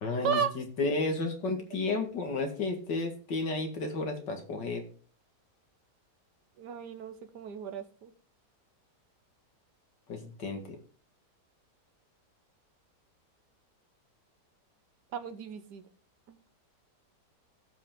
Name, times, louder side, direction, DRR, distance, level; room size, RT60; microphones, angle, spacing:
voice 1, 0.0-4.8 10.1-10.8, left 3 dB, 80° left, 3 dB, 2.7 m, -32 dB
voice 2, 6.6-8.1 15.1-15.8 16.3-16.4, right 7 dB, 75° right, 9 dB, 1.6 m, -34 dB
16.0 x 5.8 x 3.7 m, 0.40 s
omnidirectional pair, 1.9 m